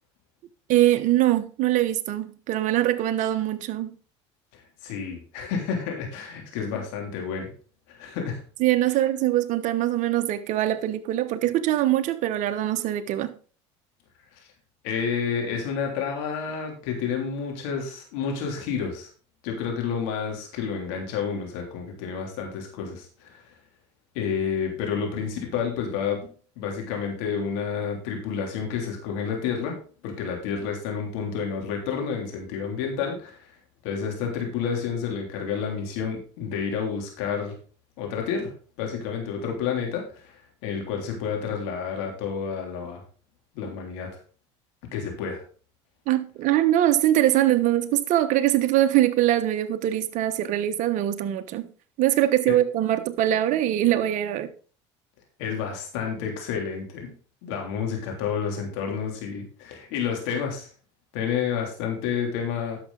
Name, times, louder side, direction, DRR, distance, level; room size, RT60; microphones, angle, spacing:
voice 1, 0.7-3.9 8.6-13.3 46.1-51.7 52.0-54.5, right 13 dB, 60° right, 1.1 m, -23 dB
voice 2, 4.5-7.5 7.9-8.4 14.8-19.1 19.4-23.4 24.1-26.3 26.6-29.8 30.0-33.5 33.8-37.5 38.0-40.3 40.6-43.0 43.5-44.1 44.9-45.4 52.5-52.6 55.4-57.1 57.4-60.7 61.1-62.8, left 6 dB, 80° left, 3.3 m, -30 dB
10.5 x 6.9 x 4.0 m
supercardioid pair, 90°, 15 cm